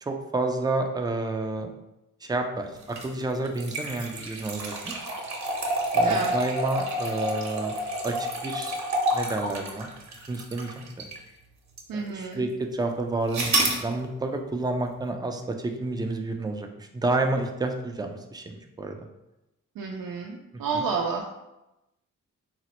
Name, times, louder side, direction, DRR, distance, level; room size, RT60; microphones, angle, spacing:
voice 1, 0.0-1.7 2.2-5.1 5.9-7.8 8.0-8.8 9.1-9.9 10.3-11.1 11.9-18.9 20.7-20.8, right 2 dB, 15° right, 4 dB, 0.4 m, -30 dB
sound 1, 2.8-11.3 11.8-11.9 13.3-13.8, right 1 dB, 55° right, 0.8 m, -28 dB
voice 2, 6.0-6.3 11.9-12.4 19.7-21.3, right 5 dB, 85° right, -1 dB, 0.5 m, -30 dB
4.1 x 2.0 x 2.9 m, 0.95 s
cardioid pair, 70°, 33 cm